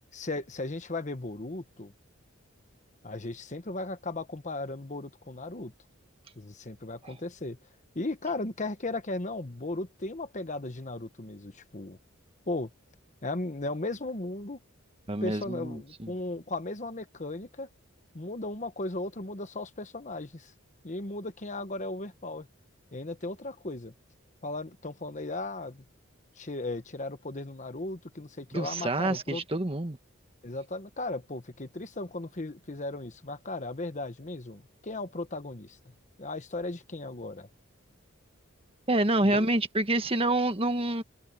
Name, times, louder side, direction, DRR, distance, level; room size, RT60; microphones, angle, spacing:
voice 1, 0.1-1.9 3.0-5.7 6.4-7.6 7.9-12.0 12.5-12.7 13.2-14.6 15.2-17.7 18.1-20.5 20.8-22.5 22.9-23.9 24.4-25.8 26.4-29.4 30.4-35.9 36.2-37.5 39.2-39.5, left 2 dB, 35° left, 1.2 m, -36 dB
voice 2, 15.1-16.1 28.5-30.0 38.9-41.0, right 1 dB, 25° right, 1.5 m, -27 dB
head